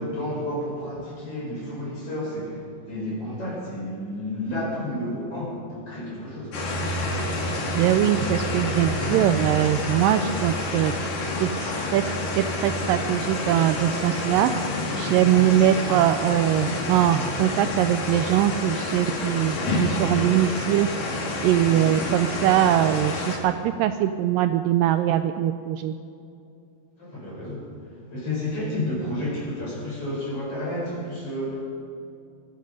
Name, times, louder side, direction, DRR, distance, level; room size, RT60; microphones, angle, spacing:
voice 1, 0.0-6.6 21.7-21.9 27.0-27.7 28.1-31.6, left 1 dB, 40° left, -4 dB, 5.8 m, -31 dB
sound 1, 6.5-23.4, left 2 dB, 65° left, 3.7 m, -28 dB
voice 2, 7.7-10.9 11.4-12.0 12.4-14.5 15.0-20.9 21.4-25.9, right 12 dB, 80° right, 9 dB, 2.1 m, -22 dB
20.5 x 13.5 x 5.3 m, 2.5 s
omnidirectional pair, 4.2 m